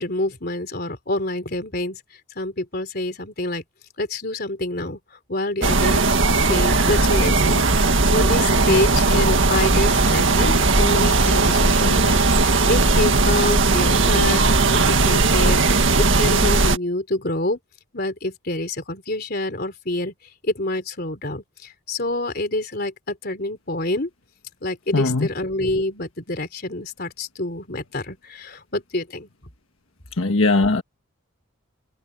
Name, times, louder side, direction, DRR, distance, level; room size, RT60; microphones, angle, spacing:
voice 1, 0.0-2.0 2.4-3.6 4.0-5.0 5.3-17.6 17.9-20.1 20.4-24.1 24.6-29.3, left 2 dB, 45° left, 3.7 m, -27 dB
sound 1, 5.6-16.8, right 3 dB, 65° right, 1.9 m, -18 dB
voice 2, 24.9-25.3 30.2-30.8, left 3 dB, 80° left, 1.4 m, -19 dB
head